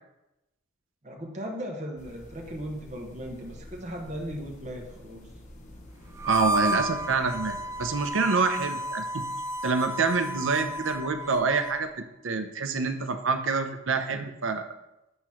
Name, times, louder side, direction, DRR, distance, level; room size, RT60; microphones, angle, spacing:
voice 1, 1.0-5.2, equal, 35° right, 1 dB, 1.1 m, -37 dB
sound 1, 2.0-8.1, equal, 40° left, 0.9 m, -47 dB
Harmonica, 6.2-11.8, right 1 dB, 15° right, 0.4 m, -32 dB
voice 2, 6.2-9.2 9.6-11.9 12.2-14.7, right 4 dB, 70° right, 8 dB, 0.6 m, -27 dB
8.1 x 3.0 x 5.7 m, 0.93 s
head